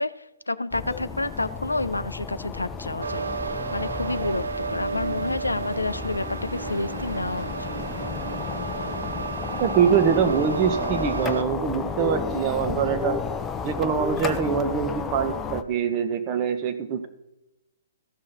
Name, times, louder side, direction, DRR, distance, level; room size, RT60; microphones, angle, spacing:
voice 1, 0.0-7.7, left 2 dB, 85° left, 13 dB, 0.4 m, -29 dB
sound 1, 0.7-15.6, left 5 dB, 15° left, 0.6 m, -33 dB
sound 2, 3.0-11.4, right 5 dB, 75° right, 0.4 m, -32 dB
voice 2, 9.6-13.2 13.6-17.1, right 7 dB, 35° right, 8 dB, 1.1 m, -24 dB
15.0 x 6.2 x 4.4 m, 0.96 s
figure-of-eight pair, 120°, 0 cm